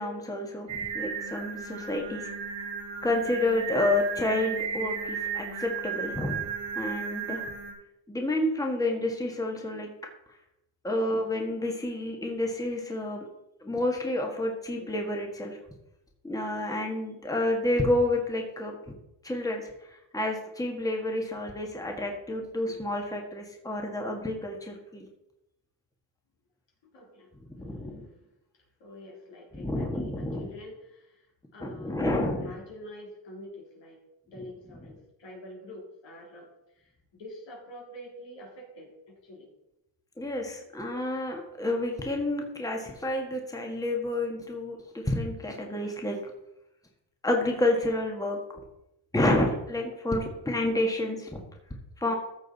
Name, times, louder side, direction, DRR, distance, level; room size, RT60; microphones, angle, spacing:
voice 1, 0.0-2.3 3.0-6.5 6.7-7.4 8.1-9.9 10.8-13.2 13.6-15.6 16.2-18.8 19.2-25.1 27.5-28.0 29.5-30.5 31.6-32.5 40.2-46.2 47.2-48.4 49.1-51.4 52.0-52.1, left 1 dB, 10° left, 1 dB, 1.6 m, -29 dB
Singing, 0.7-7.7, right 6 dB, 75° right, 2.9 m, -34 dB
voice 2, 26.8-28.3 28.8-30.1 30.4-31.2 31.5-34.0 34.3-34.9 35.2-36.5 36.8-39.5 52.0-52.2, left 1 dB, 70° left, -1 dB, 3.6 m, -46 dB
14.5 x 6.6 x 4.1 m, 0.87 s
cardioid pair, 110°, 46 cm